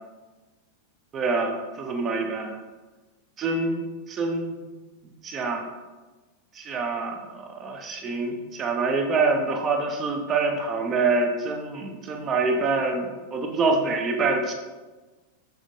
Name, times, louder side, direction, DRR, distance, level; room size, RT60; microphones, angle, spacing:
voice 1, 1.1-2.6 3.4-4.5 5.2-5.7 6.6-14.5, right 3 dB, 25° right, 4 dB, 0.3 m, -26 dB
2.3 x 2.1 x 2.8 m, 1.2 s
figure-of-eight pair, 90°, 0 cm